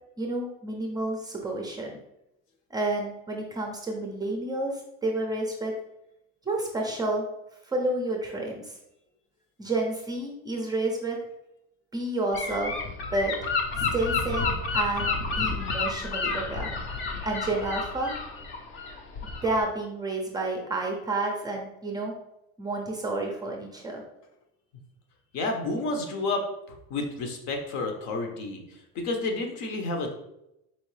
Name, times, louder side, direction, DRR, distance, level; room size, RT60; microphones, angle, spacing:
voice 1, 0.2-2.0 2.7-5.7 6.5-7.2 7.6-8.8 9.6-11.2 11.9-12.8 13.1-13.3 13.7-16.7 17.2-18.1 19.4-22.1 22.6-24.0, right 2 dB, 15° right, 1 dB, 0.5 m, -30 dB
Gull seagull / Wind, 12.3-19.6, left 4 dB, 40° left, 0.6 m, -30 dB
voice 2, 25.3-30.1, left 2 dB, 65° left, 3 dB, 0.9 m, -31 dB
4.4 x 3.1 x 3.2 m, 0.85 s
cardioid pair, 155°, 30 cm